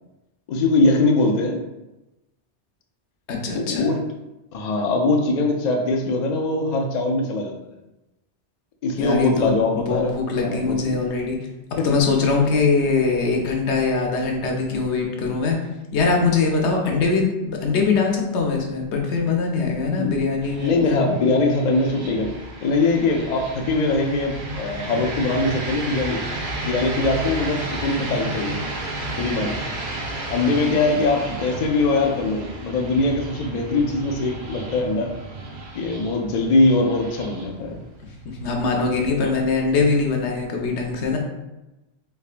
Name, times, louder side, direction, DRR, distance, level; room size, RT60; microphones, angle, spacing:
voice 1, 0.5-1.6 3.5-4.0 4.5-7.6 8.8-10.1 10.4-10.9 11.8-11.9 20.0-20.1 20.6-22.3 22.6-26.2 26.6-28.6 29.2-29.6 30.3-35.1 35.7-37.8 39.2-39.3, left 2 dB, 60° left, 2 dB, 0.4 m, -22 dB
voice 2, 3.3-3.9 9.0-11.4 11.8-15.6 15.9-21.0 38.2-41.2, left 4 dB, 75° left, 1 dB, 1.0 m, -22 dB
sound 1, 20.4-39.4, right 2 dB, 55° right, 0.7 m, -33 dB
3.5 x 3.3 x 2.4 m, 0.99 s
omnidirectional pair, 1.2 m